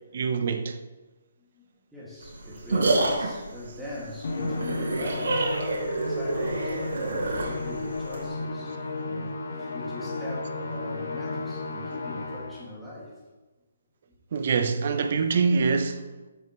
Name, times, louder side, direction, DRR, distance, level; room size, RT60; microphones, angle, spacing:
voice 1, 0.1-0.8 14.3-16.1, right 5 dB, 45° right, 0.9 m, -24 dB
voice 2, 1.4-8.8 9.1-13.2, left 1 dB, 5° right, 2.2 m, -42 dB
sound 1, 2.2-8.3, right 2 dB, 75° right, 3.0 m, -28 dB
Musical instrument, 4.2-12.7, left 2 dB, 60° left, 1.6 m, -33 dB
13.0 x 8.1 x 3.2 m
hypercardioid pair, 170°, 0 cm